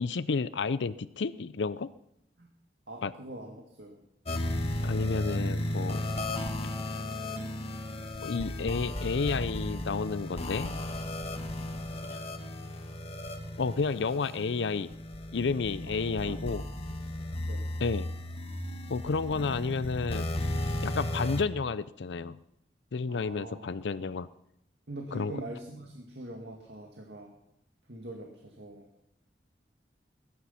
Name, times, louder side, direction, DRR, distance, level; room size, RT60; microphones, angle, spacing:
voice 1, 0.0-1.9 3.0-3.1 4.8-6.0 8.2-10.7 12.1-12.2 13.6-14.9 15.3-16.6 17.8-18.1 18.9-20.3 20.8-22.4 22.9-24.3 25.1-25.3, left 4 dB, 90° left, 15 dB, 0.5 m, -31 dB
voice 2, 2.9-4.0 15.8-16.6 16.9-17.0 17.4-17.7 23.0-23.7 24.9-27.4 27.9-28.9, right 1 dB, 70° right, 2 dB, 2.2 m, -43 dB
sound 1, 4.3-21.4, left 1 dB, 35° left, 1.7 m, -35 dB
20.5 x 11.0 x 5.8 m, 0.79 s
head